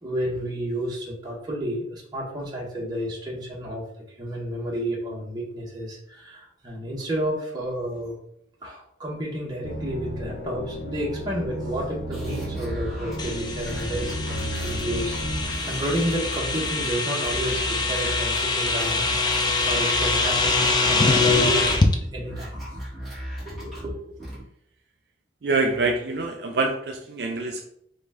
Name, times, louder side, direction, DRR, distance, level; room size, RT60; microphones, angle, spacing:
voice 1, 0.0-8.2 8.6-15.2 15.4-22.6 23.4-24.1, equal, 20° right, -3 dB, 1.1 m, -31 dB
sound 1, 9.6-15.6, equal, 75° left, 0.7 m, -33 dB
sound 2, 12.1-24.4, equal, ahead, 1.5 m, -36 dB
sound 3, 13.2-21.9, left 3 dB, 25° left, 0.4 m, -24 dB
voice 2, 25.4-27.6, right 3 dB, 65° right, 3 dB, 0.4 m, -25 dB
5.0 x 2.5 x 3.6 m, 0.70 s
head